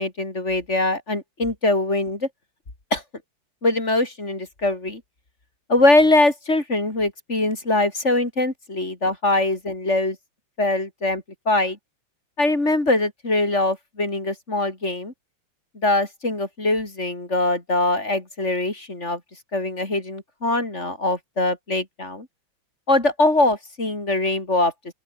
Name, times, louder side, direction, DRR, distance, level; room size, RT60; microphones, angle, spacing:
voice 1, 0.0-2.3 2.9-3.0 3.6-5.0 5.7-10.2 10.6-11.8 12.4-15.1 15.8-19.2 19.5-22.3 22.9-24.7, left 2 dB, 35° left, 4.3 m, -22 dB
open air
omnidirectional pair, 2.2 m